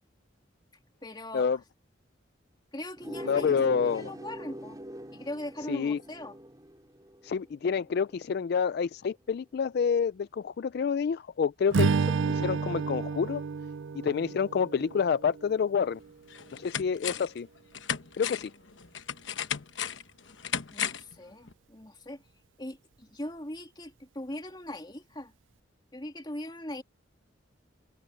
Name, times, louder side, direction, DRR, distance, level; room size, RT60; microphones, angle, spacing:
voice 1, 1.0-1.6 2.7-3.5 3.9-4.8 5.1-6.4 20.7-22.2 22.6-25.3 25.9-26.8, left 1 dB, 25° left, 2.8 m, -40 dB
sound 1, 3.0-8.3, equal, 20° right, 3.4 m, -43 dB
voice 2, 3.2-4.1 5.7-6.0 7.2-13.4 14.0-16.0 16.5-17.5 18.2-18.5, left 6 dB, 55° left, 0.3 m, -28 dB
Strum, 11.7-16.1, right 5 dB, 85° right, 0.5 m, -30 dB
sound 2, 15.8-15.9 16.3-17.4 17.7-21.2 21.5-21.6, left 8 dB, 80° left, 1.0 m, -35 dB
head